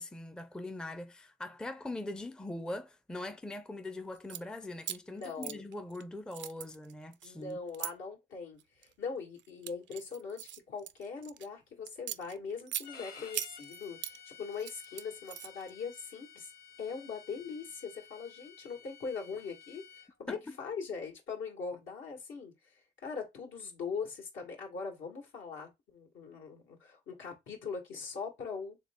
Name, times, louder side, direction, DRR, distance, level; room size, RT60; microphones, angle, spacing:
voice 1, 0.0-7.6 20.3-20.6, left 2 dB, 5° left, 0.4 m, -42 dB
sound 1, 4.1-4.4 4.8-6.0 6.3-7.9 8.6-8.9 9.4-11.5 11.9-12.9 13.3-14.2 14.5-15.7, right 12 dB, 65° right, 0.4 m, -41 dB
voice 2, 5.1-5.6 7.2-16.5 16.8-19.8 20.2-22.5 23.0-28.8, left 5 dB, 75° left, 1.8 m, -41 dB
Bowed string instrument, 12.8-20.1, left 7 dB, 50° left, 1.5 m, -53 dB
3.4 x 3.4 x 3.6 m
cardioid pair, 90°, 20 cm